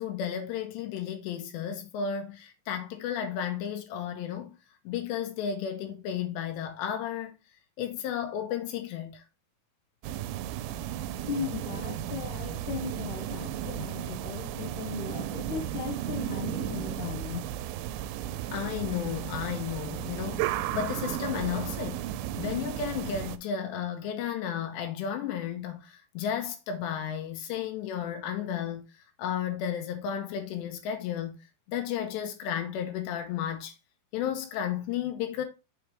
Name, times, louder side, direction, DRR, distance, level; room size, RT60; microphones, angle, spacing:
voice 1, 0.0-4.5 4.9-7.4 7.8-9.2 18.5-22.1 22.4-28.9 29.2-31.4 31.7-33.7 34.1-35.5, left 8 dB, 80° left, 3.0 m, -33 dB
sound 1, 10.0-23.4, right 11 dB, 90° right, 2.9 m, -34 dB
voice 2, 11.3-17.5, left 7 dB, 65° left, 2.0 m, -37 dB
7.1 x 4.8 x 3.3 m
omnidirectional pair, 5.2 m